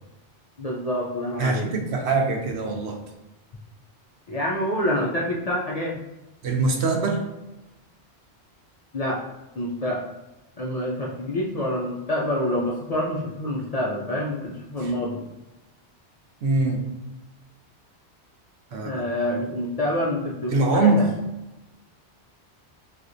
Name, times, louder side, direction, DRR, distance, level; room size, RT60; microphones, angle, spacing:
voice 1, 0.6-1.7 4.3-6.0 8.9-9.2 9.6-10.0 10.6-15.2 18.8-21.1, left 1 dB, 50° left, -4 dB, 0.5 m, -27 dB
voice 2, 1.4-3.0 6.4-7.2 14.8-14.9 16.4-16.8 18.7-19.0 20.5-21.0, right 3 dB, 80° right, 3 dB, 0.9 m, -23 dB
4.4 x 2.4 x 2.6 m, 0.98 s
omnidirectional pair, 1.1 m